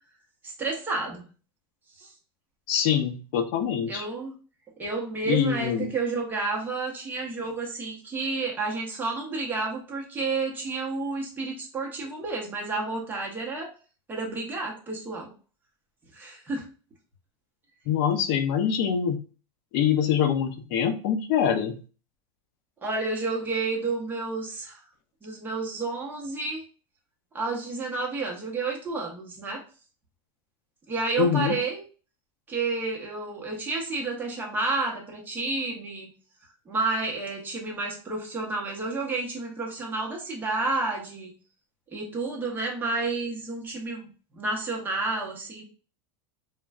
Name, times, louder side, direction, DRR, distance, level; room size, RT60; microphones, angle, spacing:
voice 1, 0.4-1.2 2.0-2.1 3.9-4.3 4.8-13.7 14.1-15.3 16.1-16.7 22.8-24.8 25.2-26.6 27.3-29.6 30.9-31.8 32.5-36.1 36.7-41.3 41.9-44.1 44.3-45.6, right 3 dB, 15° right, -1 dB, 0.9 m, -30 dB
voice 2, 2.7-4.1 5.3-5.9 17.9-19.2 19.7-21.8 31.2-31.6, left 8 dB, 55° left, 7 dB, 0.4 m, -24 dB
3.1 x 2.3 x 2.3 m, 0.37 s
supercardioid pair, 145°, 13 cm